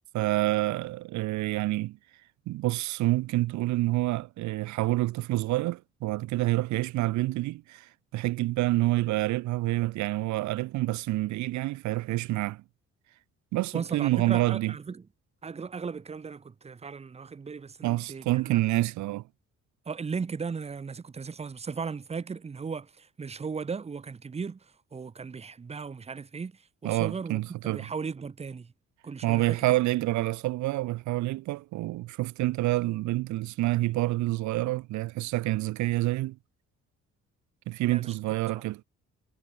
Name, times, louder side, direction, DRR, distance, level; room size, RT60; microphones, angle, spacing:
voice 1, 0.1-2.0 2.5-12.6 13.5-14.7 17.8-19.2 26.8-27.9 29.2-36.4 37.7-38.8, right 18 dB, 70° right, 0.4 m, -28 dB
voice 2, 13.7-15.0 15.4-18.6 19.9-24.6 24.9-26.5 26.8-28.7 29.0-29.6 37.8-38.1 38.5-38.6, right 5 dB, 20° right, 0.6 m, -37 dB
cardioid pair, 90°, 30 cm